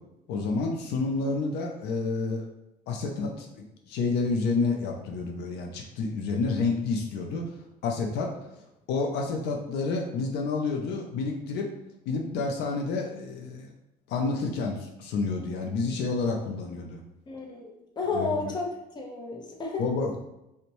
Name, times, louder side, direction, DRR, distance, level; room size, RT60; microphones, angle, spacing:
voice 1, 0.3-2.4 2.9-7.4 7.8-8.3 8.9-11.7 12.1-13.7 14.1-17.0 18.1-18.5 19.8-20.2, left 4 dB, 80° left, 1 dB, 0.5 m, -29 dB
voice 2, 17.3-18.7 18.9-19.8, left 4 dB, 25° left, -1 dB, 0.6 m, -32 dB
2.6 x 2.1 x 2.9 m, 0.91 s
cardioid pair, 110°, 17 cm